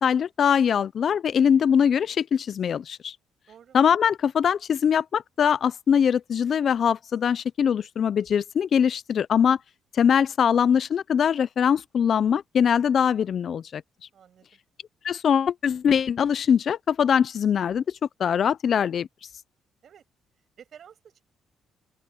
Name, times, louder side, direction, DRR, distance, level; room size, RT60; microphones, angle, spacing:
voice 1, 0.0-3.2 3.7-9.6 9.9-13.8 15.0-19.1, left 8 dB, 55° left, 0.4 m, -22 dB
voice 2, 3.5-3.8 14.1-14.6 19.8-20.1 20.6-21.2, right 8 dB, 60° right, 7.3 m, -51 dB
open air
cardioid pair, 90°, 0 cm